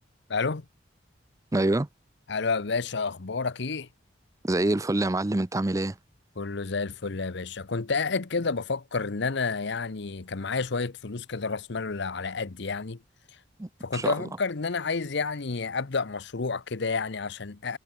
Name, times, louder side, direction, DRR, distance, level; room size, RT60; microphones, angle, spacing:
voice 1, 0.3-0.6 2.3-3.9 6.4-13.0 13.8-17.8, left 4 dB, 65° left, 0.9 m, -30 dB
voice 2, 1.5-1.9 4.4-6.0 13.6-14.2, right 2 dB, 15° right, 0.6 m, -26 dB
head